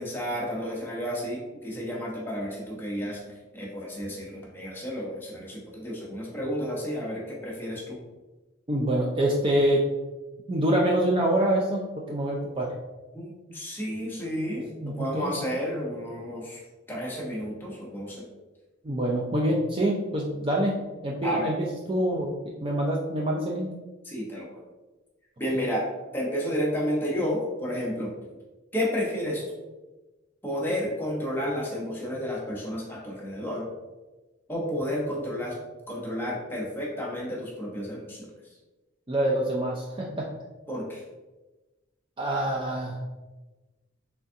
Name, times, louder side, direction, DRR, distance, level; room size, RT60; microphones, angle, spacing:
voice 1, 0.0-3.2 3.5-8.0 13.1-14.7 15.0-16.6 16.9-18.2 21.2-21.5 24.0-24.6 25.4-25.9 26.1-28.1 28.7-29.4 30.4-33.7 34.5-35.6 35.9-38.3 40.7-41.0, equal, 10° left, -4 dB, 0.8 m, -31 dB
voice 2, 8.7-9.8 10.5-12.7 14.8-15.3 18.8-23.7 25.5-25.7 39.1-40.3 42.2-43.0, right 1 dB, 25° right, -2 dB, 0.4 m, -26 dB
3.9 x 3.4 x 2.6 m, 1.1 s
head